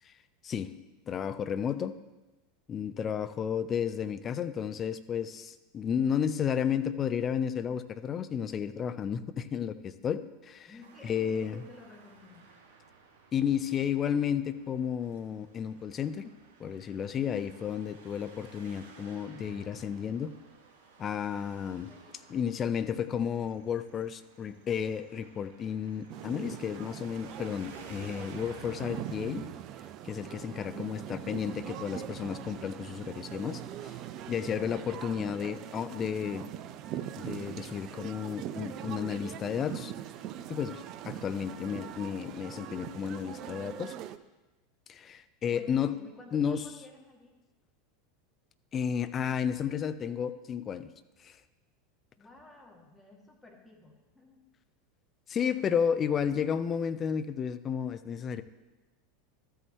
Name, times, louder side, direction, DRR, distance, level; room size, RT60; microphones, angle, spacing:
voice 1, 0.4-0.8 1.1-1.9 2.7-10.7 11.0-11.6 13.3-16.3 16.6-20.3 21.0-21.9 22.3-29.5 30.0-33.9 34.3-36.5 37.2-39.9 40.5-43.9 44.9-46.0 46.3-46.6 48.7-50.9 51.2-51.4 55.3-58.4, left 8 dB, 30° left, 12 dB, 0.5 m, -32 dB
voice 2, 10.7-12.6 21.9-22.2 30.5-31.0 45.5-47.3 52.2-54.4, left 2 dB, 10° left, -2 dB, 2.5 m, -53 dB
Traffic noise roadway noise, 10.8-29.5, right 5 dB, 60° right, 1.3 m, -55 dB
sound 1, 26.1-44.2, right 11 dB, 45° right, 0.5 m, -42 dB
13.5 x 8.0 x 3.1 m, 1.1 s
figure-of-eight pair, 80°, 0 cm